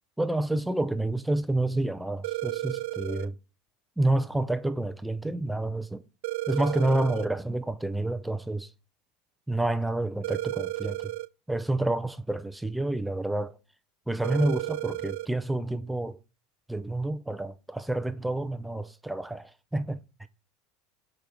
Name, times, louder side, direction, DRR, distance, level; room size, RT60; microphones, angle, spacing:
voice 1, 0.2-3.3 4.0-6.0 6.5-8.7 9.5-11.1 11.5-13.6 14.1-16.2 16.7-20.0, right 2 dB, 5° right, 0.5 m, -29 dB
sound 1, 2.2-3.3 6.2-7.3 10.2-11.3 14.2-15.3, right 17 dB, 75° right, 0.3 m, -33 dB
7.6 x 5.2 x 7.0 m
supercardioid pair, 150°, 0 cm